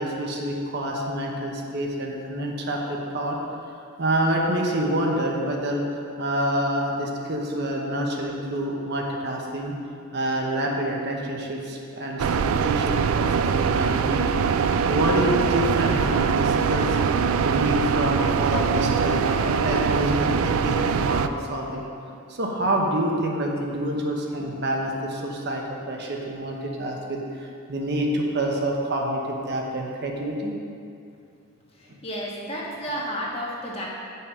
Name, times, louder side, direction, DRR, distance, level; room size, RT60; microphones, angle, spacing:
voice 1, 0.0-3.4 4.0-5.8 6.2-9.8 10.1-14.3 14.6-21.8 22.3-30.5 31.9-32.0, right 1 dB, 55° right, 0 dB, 1.0 m, -27 dB
sound 1, 12.2-21.3, right 6 dB, 80° right, 0.3 m, -23 dB
voice 2, 31.7-33.9, equal, 30° left, -4 dB, 1.4 m, -32 dB
8.9 x 5.6 x 4.9 m, 2.5 s
head